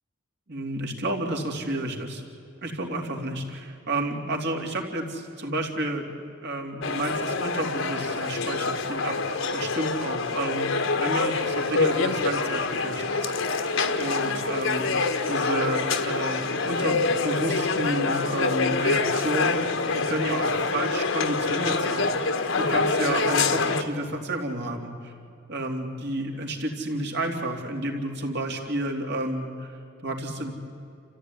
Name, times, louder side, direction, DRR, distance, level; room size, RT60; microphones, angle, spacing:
voice 1, 0.5-2.2 2.6-6.1 6.4-13.3 13.9-14.9 15.3-22.2 22.6-25.1 25.5-30.5, right 1 dB, 60° right, 2 dB, 3.2 m, -31 dB
sound 1, 6.8-23.8, left 3 dB, 75° left, 1.5 m, -26 dB
29.5 x 15.0 x 9.8 m, 2.5 s
head